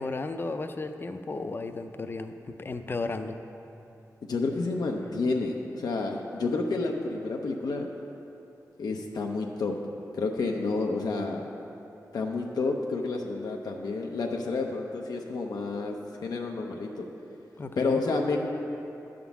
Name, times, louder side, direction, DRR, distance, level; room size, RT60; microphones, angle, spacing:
voice 1, 0.0-2.3 2.6-3.4 17.6-18.0, left 3 dB, 35° left, 8 dB, 0.4 m, -34 dB
voice 2, 4.2-7.9 8.8-9.7 10.1-11.5 12.1-15.9 16.2-17.0 17.8-18.5, left 3 dB, 85° left, 1 dB, 0.6 m, -30 dB
10.5 x 3.7 x 7.0 m, 2.9 s
wide cardioid pair, 100°, 6 cm